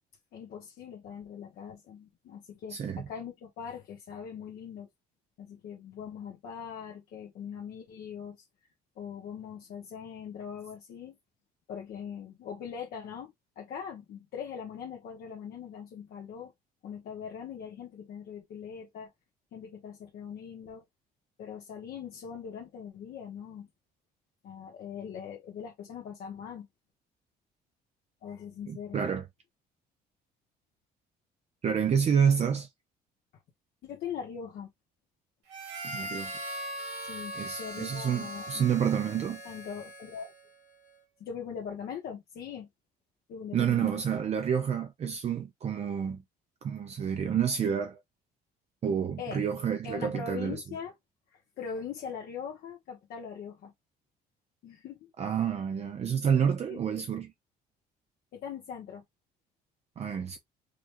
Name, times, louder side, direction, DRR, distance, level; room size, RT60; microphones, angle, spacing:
voice 1, 0.3-4.9 5.4-8.4 9.0-11.2 11.7-16.5 16.8-19.1 19.5-20.8 21.4-23.7 24.4-26.7 28.2-29.0 33.8-34.7 37.0-38.7 39.4-40.3 41.2-42.7 43.3-44.0 49.2-49.4 49.8-50.9 51.3-53.7 54.6-55.0 56.7-57.1 58.3-59.0, left 7 dB, 65° left, 1.0 m, -41 dB
voice 2, 2.7-3.1 28.7-29.2 31.6-32.7 35.8-36.4 37.4-39.4 43.5-46.2 46.6-48.0 48.8-50.6 55.2-57.3 60.0-60.4, right 7 dB, 40° right, 0.6 m, -29 dB
Harmonica, 35.5-40.5, right 1 dB, 80° right, 2.5 m, -40 dB
4.9 x 2.3 x 2.9 m
cardioid pair, 110°, 17 cm